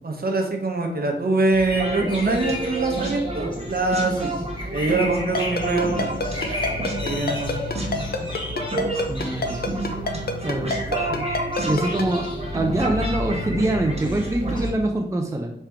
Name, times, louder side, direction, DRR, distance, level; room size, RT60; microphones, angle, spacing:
voice 1, 0.0-4.3 4.7-6.1 7.0-7.5, right 2 dB, 55° right, 3 dB, 0.9 m, -23 dB
sound 1, 1.5-14.7, left 1 dB, 25° left, 1.1 m, -33 dB
sound 2, 1.7-14.5, right 2 dB, 35° right, 1.2 m, -30 dB
Ringtone, 5.3-12.0, left 3 dB, 55° left, 0.6 m, -26 dB
voice 2, 9.1-9.7 10.4-10.7 11.6-15.5, right 1 dB, 15° right, 3 dB, 0.5 m, -24 dB
3.6 x 3.3 x 4.4 m, 0.77 s
wide cardioid pair, 65°, 19 cm